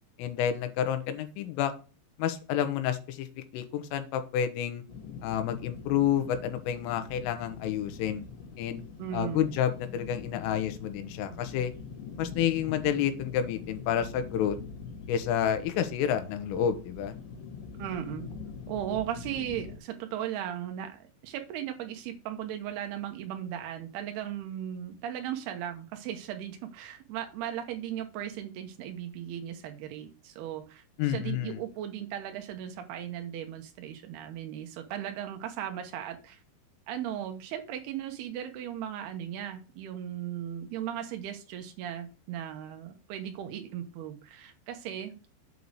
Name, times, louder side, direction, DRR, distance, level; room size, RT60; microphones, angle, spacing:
voice 1, 0.2-1.7 2.2-3.3 3.5-4.8 5.2-8.2 8.6-8.8 9.1-11.7 12.2-14.6 15.1-17.2 31.0-31.6, left 9 dB, 90° left, 9 dB, 3.5 m, -29 dB
sound 1, 4.9-19.8, left 5 dB, 65° left, 4.5 m, -43 dB
voice 2, 9.0-9.5 17.8-18.3 18.7-36.4 36.9-45.1, right 10 dB, 90° right, 5 dB, 2.3 m, -37 dB
8.3 x 4.1 x 6.2 m, 0.33 s
omnidirectional pair, 5.8 m